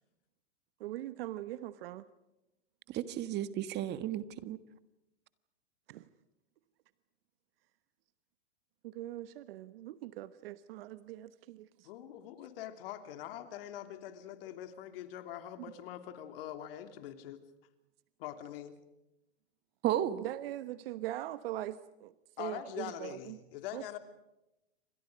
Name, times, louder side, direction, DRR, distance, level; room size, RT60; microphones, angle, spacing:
voice 1, 0.8-2.0 5.9-6.1 8.8-11.9 20.2-23.4 23.7-23.8, right 14 dB, 60° right, 14 dB, 1.2 m, -41 dB
voice 2, 2.9-4.6 19.8-20.2, right 12 dB, 30° right, 14 dB, 1.5 m, -33 dB
voice 3, 11.8-17.4 18.2-18.8 22.4-24.0, left 11 dB, 55° left, 8 dB, 3.2 m, -44 dB
29.5 x 26.0 x 5.2 m, 0.91 s
hypercardioid pair, 125°, 34 cm